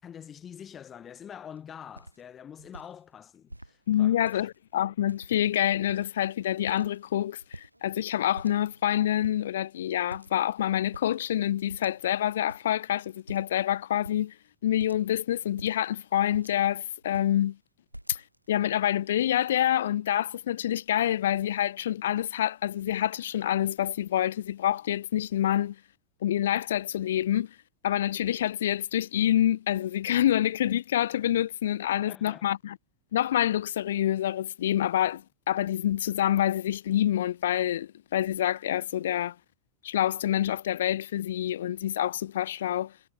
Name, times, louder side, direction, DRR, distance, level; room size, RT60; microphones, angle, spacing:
voice 1, 0.0-4.4 31.8-32.5, left 8 dB, 25° left, 6.6 m, -46 dB
sound 1, 1.5-1.6 1.9-2.2 2.6-2.9 3.5-3.7 4.2-4.6 5.1-5.5 5.8-6.3 6.7-7.1 7.4-8.1 8.3-8.9 9.2-9.4 10.1-10.5 10.8-11.1 11.7-12.2 12.5-12.6 13.3-13.6 14.0-14.2 14.8-15.1 15.5-16.7 17.0-17.4 17.9-18.5, right 1 dB, 90° right, 2.2 m, -46 dB
voice 2, 3.9-14.3 14.6-17.6 18.1-18.2 18.5-25.8 26.2-27.5 27.8-32.8 33.1-39.3 39.8-42.9, left 11 dB, 60° left, 0.8 m, -27 dB
figure-of-eight pair, 90°, 0 cm